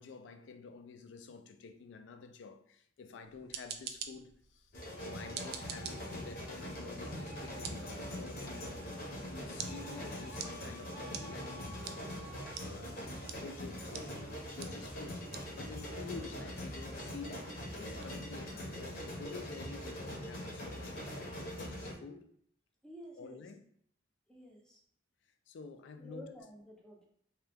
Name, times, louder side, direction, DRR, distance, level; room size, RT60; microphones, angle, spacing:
voice 1, 0.0-8.8 9.2-11.7 12.5-15.2 15.5-22.3 23.2-23.6 25.5-26.2, left 5 dB, 70° left, 0.3 m, -49 dB
sound 1, 3.2-20.0, right 8 dB, 60° right, 0.3 m, -50 dB
sound 2, 4.7-21.9, equal, 55° left, 0.8 m, -42 dB
voice 2, 22.8-23.4 24.3-24.8 26.0-27.1, left 1 dB, 5° left, 0.5 m, -51 dB
2.8 x 2.2 x 3.3 m
head